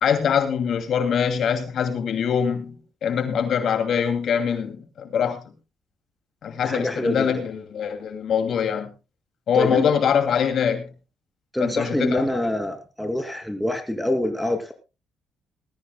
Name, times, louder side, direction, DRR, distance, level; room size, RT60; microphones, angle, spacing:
voice 1, 0.0-5.4 6.4-8.9 9.5-10.9 11.6-12.3, left 7 dB, 65° left, 7 dB, 2.5 m, -23 dB
voice 2, 6.6-7.2 9.5-9.9 11.5-14.7, left 1 dB, 5° left, 5 dB, 2.7 m, -25 dB
20.0 x 14.5 x 2.2 m, 0.28 s
cardioid pair, 90°, 0 cm